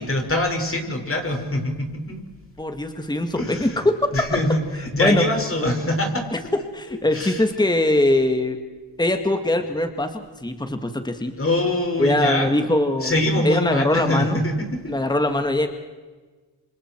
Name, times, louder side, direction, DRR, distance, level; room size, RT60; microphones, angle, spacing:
voice 1, 0.0-2.2 3.4-3.7 4.1-6.3 6.9-7.4 11.4-12.6 13.0-14.9, left 1 dB, 30° left, 2 dB, 5.9 m, -24 dB
voice 2, 2.6-4.3 5.0-5.3 6.3-8.6 9.0-11.3 12.0-14.4 14.9-15.7, left 1 dB, 10° left, 7 dB, 2.0 m, -22 dB
28.5 x 25.5 x 4.7 m, 1.3 s
cardioid pair, 75°, 43 cm